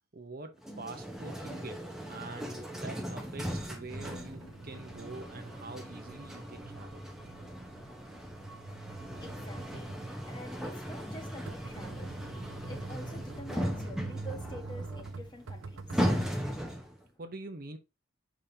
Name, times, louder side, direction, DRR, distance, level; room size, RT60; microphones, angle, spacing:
voice 1, 0.1-7.0 17.2-17.8, right 2 dB, 45° right, 0.9 m, -45 dB
sound 1, 0.6-17.0, equal, ahead, 1.0 m, -38 dB
sound 2, 3.6-6.6, equal, 70° left, 1.7 m, -60 dB
sound 3, 3.9-16.3, right 3 dB, 65° right, 0.5 m, -46 dB
voice 2, 7.1-17.2, equal, 20° left, 1.3 m, -50 dB
7.4 x 5.1 x 2.8 m
head